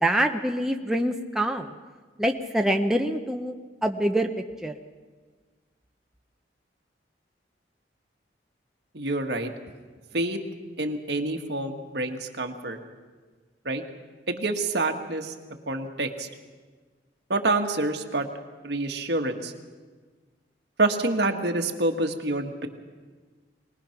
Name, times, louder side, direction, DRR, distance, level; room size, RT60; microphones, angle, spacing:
voice 1, 0.0-1.7 2.2-3.5 3.8-4.3 4.6-4.7, right 1 dB, 5° right, 3 dB, 0.7 m, -25 dB
voice 2, 8.9-9.5 10.1-10.4 10.8-12.8 13.6-13.8 14.3-15.3 15.7-16.3 17.3-18.3 18.6-19.5 20.8-22.7, right 2 dB, 60° right, 4 dB, 1.6 m, -27 dB
23.5 x 19.5 x 5.9 m, 1.4 s
head